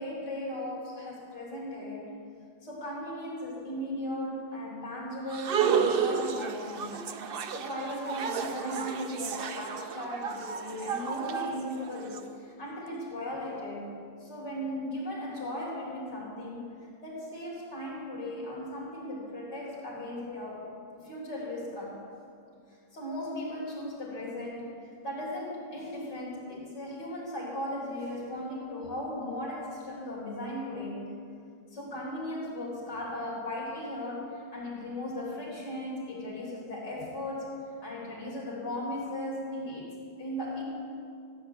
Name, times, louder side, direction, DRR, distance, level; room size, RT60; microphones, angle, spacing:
voice 1, 0.0-2.1 2.6-7.0 7.5-13.9 14.2-16.7 17.0-20.7 20.9-22.0 22.9-24.7 25.0-31.0 31.7-37.5 37.8-39.9 40.2-40.6, left 1 dB, 70° left, -5 dB, 4.8 m, -37 dB
sound 1, 5.3-12.2, right 7 dB, 65° right, 0.5 m, -32 dB
16.0 x 8.6 x 7.9 m, 2.4 s
omnidirectional pair, 1.9 m